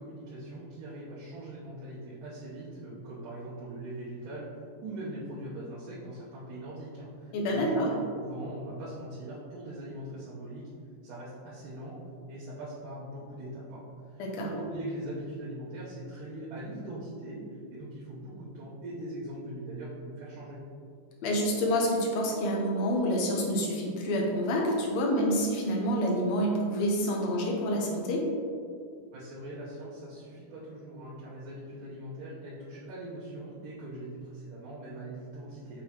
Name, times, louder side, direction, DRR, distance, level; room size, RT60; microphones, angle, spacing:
voice 1, 0.0-4.5 4.8-7.8 8.2-10.7 11.0-12.0 12.3-13.8 14.1-17.5 17.7-20.6 29.1-35.8, right 1 dB, 85° right, -9 dB, 2.7 m, -41 dB
voice 2, 7.3-7.9 14.2-14.5 21.2-28.2, equal, 70° left, -1 dB, 2.0 m, -28 dB
7.7 x 5.5 x 3.0 m, 2.3 s
omnidirectional pair, 3.6 m